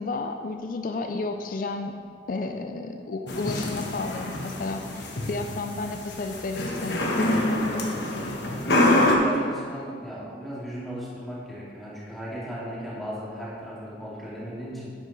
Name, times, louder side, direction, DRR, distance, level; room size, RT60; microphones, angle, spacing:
voice 1, 0.0-1.9 2.3-7.0, left 3 dB, 50° left, 6 dB, 0.4 m, -32 dB
sound 1, 3.3-9.1, left 1 dB, 70° left, 1.2 m, -26 dB
voice 2, 8.7-14.9, equal, ahead, -9 dB, 2.4 m, -36 dB
9.4 x 8.8 x 3.3 m, 2.1 s
head